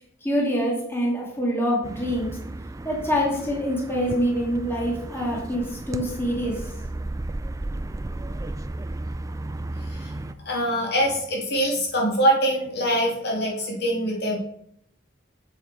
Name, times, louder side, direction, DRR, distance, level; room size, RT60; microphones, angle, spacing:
voice 1, 0.2-2.3 2.8-6.7, equal, 10° left, -3 dB, 2.1 m, -25 dB
sound 1, 1.8-10.3, right 2 dB, 15° right, 0.3 m, -34 dB
voice 2, 10.5-14.4, equal, 55° left, -1 dB, 2.2 m, -24 dB
7.6 x 6.8 x 4.6 m, 0.72 s
head